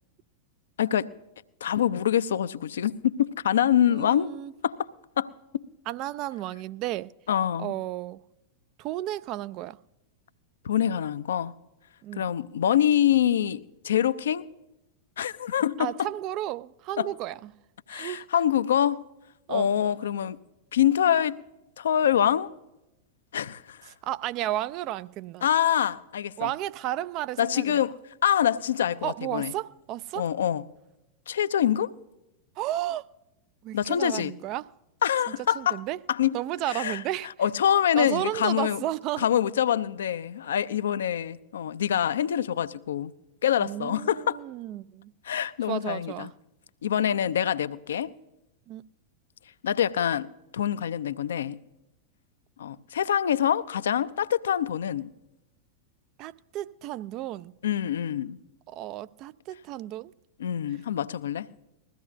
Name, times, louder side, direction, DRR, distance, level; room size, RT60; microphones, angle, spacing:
voice 1, 0.8-1.1 1.6-4.3 4.6-4.9 5.2-5.6 7.3-7.7 10.6-11.5 12.2-14.5 15.2-15.9 17.0-17.1 17.9-19.0 19.5-20.4 20.7-21.4 21.8-22.5 23.3-23.9 25.4-26.5 27.4-28.0 28.2-29.5 30.2-30.7 31.3-31.9 33.7-34.4 35.0-35.8 36.1-36.4 36.7-37.0 37.4-38.8 39.2-43.1 43.4-44.4 45.2-46.3 46.8-48.1 49.6-50.3 50.5-51.6 52.6-55.1 57.6-58.4 60.4-61.5, left 10 dB, 65° left, 0.5 m, -25 dB
voice 2, 3.9-4.5 5.9-7.1 7.6-8.2 8.8-9.8 12.0-12.3 15.8-17.5 17.9-18.2 19.5-19.7 24.0-25.5 26.4-27.8 29.0-30.3 32.6-33.1 33.6-34.7 35.3-36.0 36.3-37.3 38.0-39.3 43.6-45.1 45.7-46.3 48.7-48.8 56.2-57.5 58.7-60.1, right 14 dB, 40° right, 0.4 m, -33 dB
21.0 x 15.0 x 2.6 m
figure-of-eight pair, 90°, 0 cm